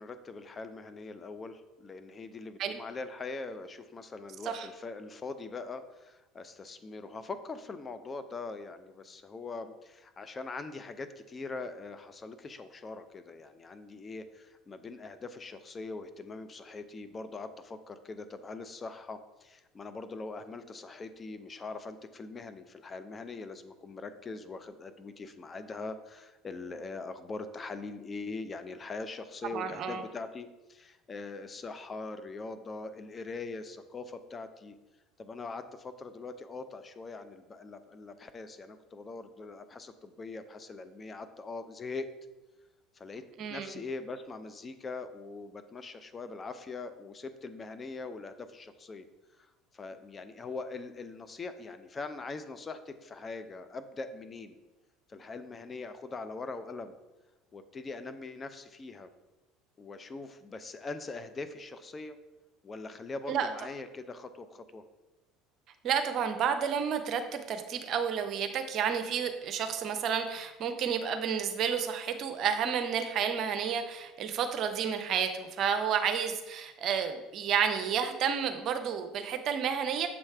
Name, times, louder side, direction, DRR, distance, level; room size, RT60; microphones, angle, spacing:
voice 1, 0.0-34.8 35.2-42.1 42.9-49.1 49.7-54.6 55.1-57.0 57.5-59.1 59.8-62.2 62.6-64.8, left 3 dB, 25° left, 10 dB, 0.6 m, -42 dB
voice 2, 29.5-30.0 43.4-43.7 63.3-63.5 65.8-80.1, right 7 dB, 50° right, 7 dB, 0.7 m, -31 dB
7.1 x 3.2 x 4.7 m, 1.1 s
figure-of-eight pair, 65°, 0 cm